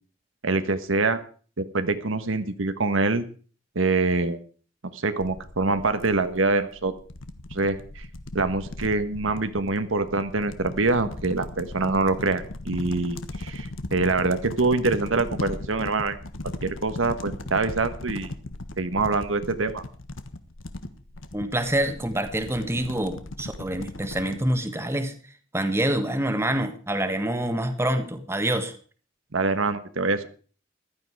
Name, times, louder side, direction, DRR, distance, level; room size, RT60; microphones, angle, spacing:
voice 1, 0.4-1.2 1.6-3.2 3.7-4.4 4.9-6.9 7.5-8.1 8.3-16.2 16.4-18.3 18.8-19.8 29.3-30.3, right 3 dB, 85° right, 10 dB, 1.3 m, -25 dB
sound 1, 5.2-24.5, left 2 dB, 85° left, 1.4 m, -38 dB
voice 2, 21.3-25.1 25.5-28.7, right 1 dB, 15° right, 8 dB, 1.4 m, -26 dB
15.5 x 12.0 x 4.7 m, 0.40 s
head